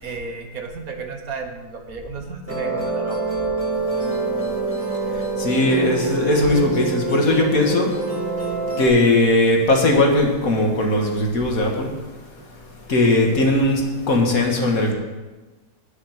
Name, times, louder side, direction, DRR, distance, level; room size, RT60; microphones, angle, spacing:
voice 1, 0.0-3.2, right 4 dB, 60° right, 4 dB, 1.6 m, -33 dB
Musical instrument, 2.5-8.9, right 3 dB, 10° right, 1.9 m, -25 dB
voice 2, 5.1-7.9 8.8-11.9 12.9-14.9, left 2 dB, 60° left, 1 dB, 2.1 m, -19 dB
10.5 x 6.5 x 7.8 m, 1.2 s
omnidirectional pair, 1.7 m